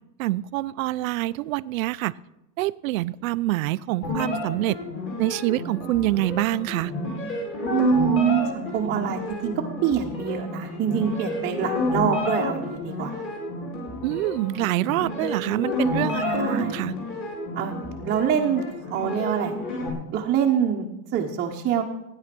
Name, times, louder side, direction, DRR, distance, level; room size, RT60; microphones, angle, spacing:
voice 1, 0.2-2.1 2.6-4.8 5.2-6.9 14.0-17.0, right 17 dB, 65° right, 17 dB, 0.6 m, -26 dB
sound 1, 4.0-19.9, left 2 dB, 25° left, 4.5 m, -30 dB
voice 2, 7.7-9.5 9.8-13.2 16.2-16.8 17.5-18.6 18.9-19.5 20.1-20.9 21.1-21.8, right 9 dB, 20° right, -1 dB, 1.0 m, -25 dB
16.5 x 9.9 x 6.1 m, 0.94 s
supercardioid pair, 160°, 45 cm